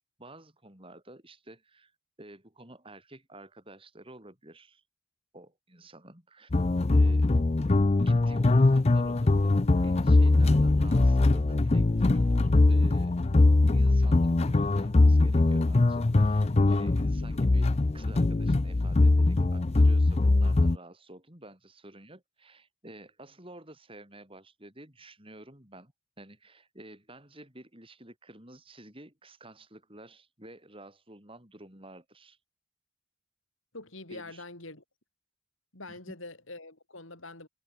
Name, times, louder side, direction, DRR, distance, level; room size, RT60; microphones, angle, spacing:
voice 1, 0.0-1.9 2.2-4.8 5.3-6.5 6.9-7.3 8.0-9.6 9.8-13.1 13.7-25.9 26.2-32.4 34.1-34.4 35.9-36.2, right 1 dB, 25° right, 6.5 m, -50 dB
sound 1, 6.5-20.8, left 2 dB, 30° left, 0.5 m, -22 dB
voice 2, 33.7-34.8 35.7-37.5, left 2 dB, 65° left, 5.8 m, -44 dB
head